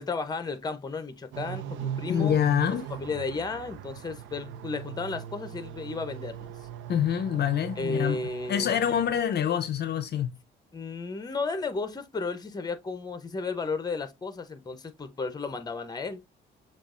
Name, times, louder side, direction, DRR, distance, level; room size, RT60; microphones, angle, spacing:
voice 1, 0.0-2.4 3.0-6.5 7.8-8.8 10.7-16.2, left 4 dB, 20° left, 0.7 m, -33 dB
sound 1, 1.3-9.2, right 10 dB, 75° right, 0.5 m, -40 dB
voice 2, 2.1-2.9 6.9-8.2 8.5-10.4, left 9 dB, 55° left, 0.6 m, -26 dB
7.0 x 2.4 x 2.4 m
cardioid pair, 90°, 20 cm